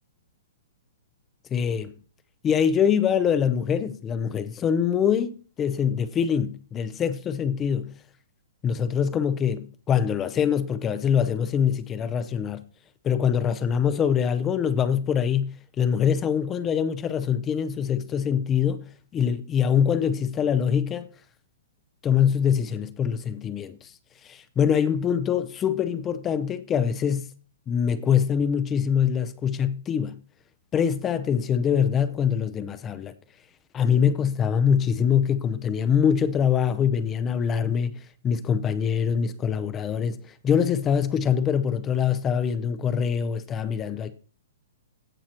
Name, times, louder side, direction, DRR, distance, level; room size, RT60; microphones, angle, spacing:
voice 1, 1.5-1.9 2.4-7.9 8.6-12.6 13.0-21.1 22.0-23.9 24.2-27.3 27.7-30.2 30.7-33.1 33.7-44.2, left 8 dB, 15° left, 0.5 m, -24 dB
16.5 x 6.4 x 2.9 m
hypercardioid pair, 160°, 0 cm